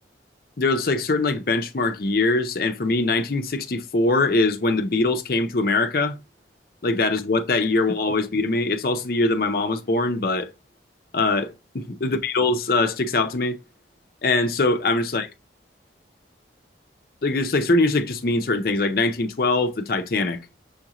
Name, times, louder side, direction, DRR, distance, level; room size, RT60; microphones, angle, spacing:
voice 1, 0.6-6.2 6.8-10.5 11.1-13.6 14.2-15.3 17.2-20.4, left 3 dB, 55° left, 0.6 m, -22 dB
6.4 x 2.5 x 2.9 m
head